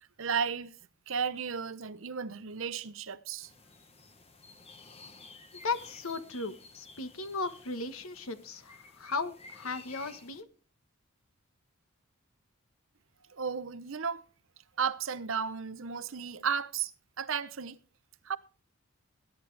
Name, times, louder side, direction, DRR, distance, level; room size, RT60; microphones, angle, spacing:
voice 1, 0.2-0.7 1.1-3.5 13.3-14.2 14.8-16.9 17.2-17.8 18.2-18.4, right 6 dB, 65° right, 0.7 m, -34 dB
sound 1, 3.4-10.4, left 3 dB, 25° left, 1.4 m, -53 dB
voice 2, 5.6-10.5, left 3 dB, 75° left, 1.3 m, -36 dB
20.0 x 10.5 x 3.3 m
head